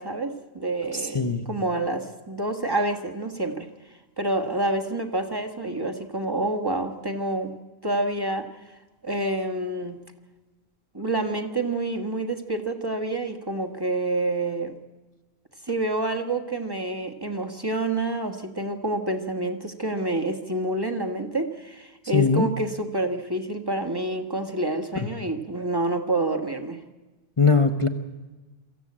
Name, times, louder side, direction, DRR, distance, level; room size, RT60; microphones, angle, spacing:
voice 1, 0.0-3.7 4.2-7.5 7.8-8.6 9.0-10.0 10.9-14.7 15.7-26.8, right 2 dB, 20° right, 5 dB, 1.5 m, -28 dB
voice 2, 0.9-1.4 22.1-22.5 27.4-27.9, left 4 dB, 30° left, 5 dB, 1.0 m, -20 dB
23.0 x 14.5 x 8.7 m, 1.2 s
omnidirectional pair, 1.1 m